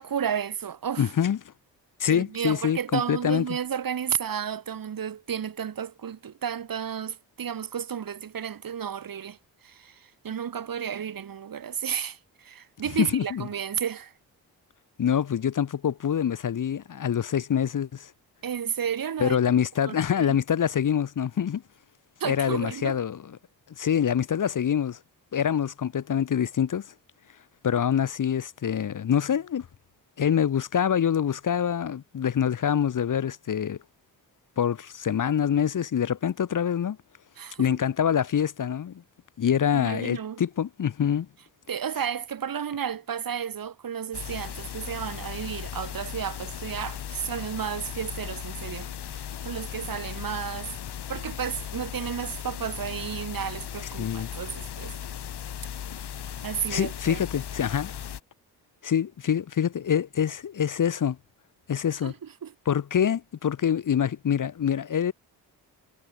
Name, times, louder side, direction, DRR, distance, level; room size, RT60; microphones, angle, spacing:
voice 1, 0.0-1.1 2.1-9.4 9.6-14.1 18.4-19.4 19.9-20.4 22.2-23.0 37.4-37.8 39.7-40.4 41.7-50.7 51.1-55.0 56.4-57.2 62.0-62.1 62.4-62.5, right 8 dB, 50° right, 1.3 m, -32 dB
voice 2, 1.0-1.4 2.0-3.5 13.0-13.5 15.0-18.1 19.2-21.6 22.2-23.2 23.8-25.0 25.3-26.9 27.6-29.7 30.2-33.8 34.6-37.0 37.6-39.0 39.4-41.3 54.0-54.3 56.7-57.9 58.8-61.2 61.7-62.1 62.7-65.1, left 8 dB, 45° left, 0.9 m, -25 dB
sound 1, 44.1-58.2, left 9 dB, 65° left, 1.6 m, -37 dB
supercardioid pair, 50°, 43 cm